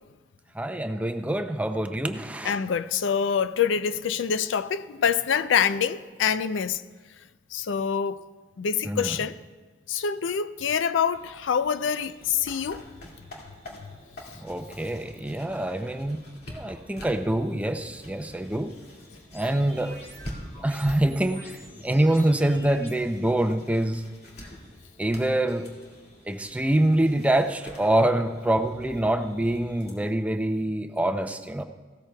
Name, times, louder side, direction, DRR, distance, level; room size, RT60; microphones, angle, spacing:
voice 1, 0.6-2.6 8.9-9.1 14.4-16.2 16.5-18.7 19.3-19.9 20.6-21.5 21.8-24.0 25.0-25.7 26.3-31.6, right 1 dB, 10° right, 0.5 m, -25 dB
voice 2, 2.4-6.8 7.5-8.2 8.6-9.4 9.9-12.8 13.7-13.9, left 7 dB, 90° left, 0.4 m, -26 dB
sound 1, 11.1-29.9, left 1 dB, 60° left, 2.3 m, -46 dB
sound 2, 19.3-22.9, right 1 dB, 15° left, 2.5 m, -46 dB
17.0 x 13.5 x 2.3 m
head